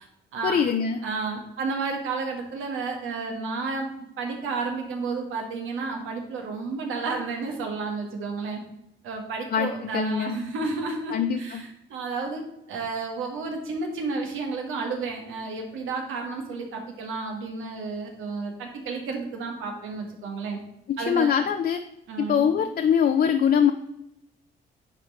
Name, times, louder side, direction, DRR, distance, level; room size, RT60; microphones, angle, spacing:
voice 1, 0.4-1.0 9.5-10.4 11.1-11.6 20.9-21.8 22.2-23.7, left 7 dB, 50° left, 7 dB, 0.6 m, -23 dB
voice 2, 1.0-3.9 4.2-8.6 9.0-12.4 12.7-20.6 21.0-21.3 22.1-22.5, right 4 dB, 90° right, 2 dB, 1.8 m, -31 dB
9.7 x 4.5 x 4.2 m, 0.85 s
cardioid pair, 90°, 20 cm